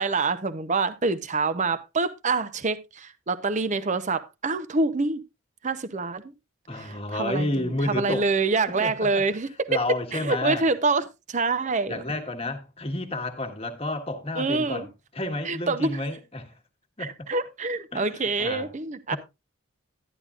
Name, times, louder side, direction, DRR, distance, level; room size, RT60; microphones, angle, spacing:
voice 1, 0.0-5.2 5.6-6.2 6.7-9.8 10.1-12.0 14.4-14.9 15.4-16.0 17.0-19.2, right 3 dB, 35° right, 0.7 m, -26 dB
voice 2, 6.7-8.3 8.7-9.2 9.7-10.7 11.9-14.9 15.1-16.5 17.0-17.3 17.9-18.7 19.1-19.2, left 2 dB, 30° left, 1.5 m, -31 dB
12.0 x 10.5 x 2.4 m
head